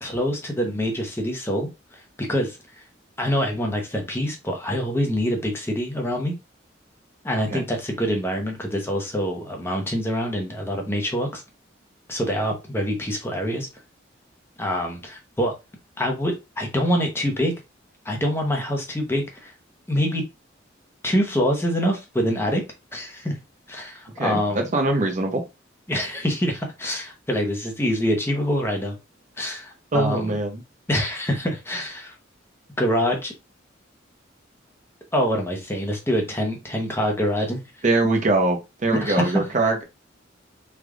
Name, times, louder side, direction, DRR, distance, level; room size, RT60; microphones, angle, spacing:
voice 1, 0.0-2.8 3.2-6.3 7.2-11.4 12.1-13.7 14.6-15.5 16.0-17.5 18.0-19.5 19.9-20.2 21.0-22.6 22.9-23.4 23.7-24.6 25.9-29.0 29.4-30.3 30.9-32.2 32.8-33.3 35.1-37.8 39.0-39.5, equal, 15° left, 2 dB, 0.7 m, -25 dB
voice 2, 24.7-25.4 29.9-30.6 37.8-39.8, right 2 dB, 40° right, 4 dB, 0.6 m, -22 dB
3.3 x 2.4 x 3.6 m, 0.25 s
head